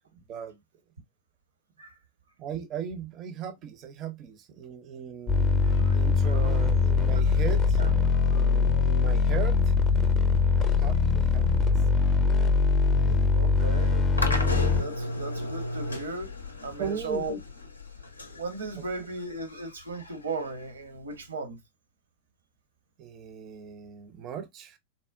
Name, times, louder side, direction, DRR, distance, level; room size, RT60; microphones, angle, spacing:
voice 1, 0.1-0.6 2.4-5.6 5.9-9.6 10.6-11.7 12.9-13.5 16.8-17.2 18.8-18.9 23.0-24.8, right 8 dB, 35° right, 0.5 m, -38 dB
sound 1, 5.3-14.8, left 5 dB, 25° left, 0.5 m, -22 dB
voice 2, 5.6-6.0 6.2-6.5 7.8-8.4 13.3-16.3 16.6-17.4 18.3-21.6, right 3 dB, 70° right, 0.7 m, -37 dB
sound 2, 14.2-21.2, left 1 dB, 80° left, 0.5 m, -36 dB
3.6 x 2.1 x 2.3 m
figure-of-eight pair, 90°, 0 cm